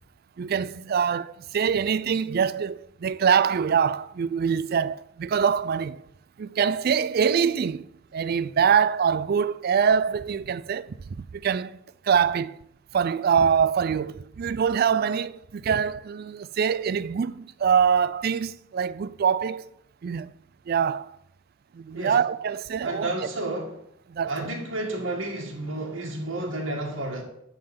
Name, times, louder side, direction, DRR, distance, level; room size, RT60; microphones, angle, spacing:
voice 1, 0.4-6.1 6.4-7.9 8.1-12.6 12.9-19.7 20.0-20.3 20.7-21.2 21.7-23.3 24.1-24.4, right 7 dB, 50° right, 0.3 m, -24 dB
voice 2, 22.8-23.8 24.3-27.2, right 2 dB, 65° right, 1.9 m, -31 dB
11.5 x 3.9 x 7.1 m
head